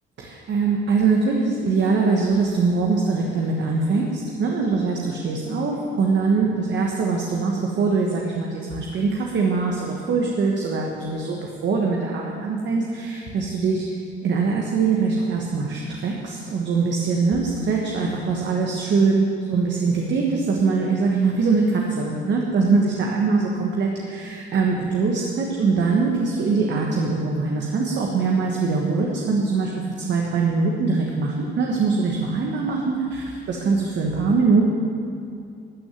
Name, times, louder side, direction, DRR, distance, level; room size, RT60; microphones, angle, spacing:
voice 1, 0.2-13.8 14.2-29.7 30.1-34.6, right 4 dB, 65° right, -1 dB, 1.4 m, -22 dB
13.0 x 6.3 x 9.2 m, 2.5 s
cardioid pair, 90°, 20 cm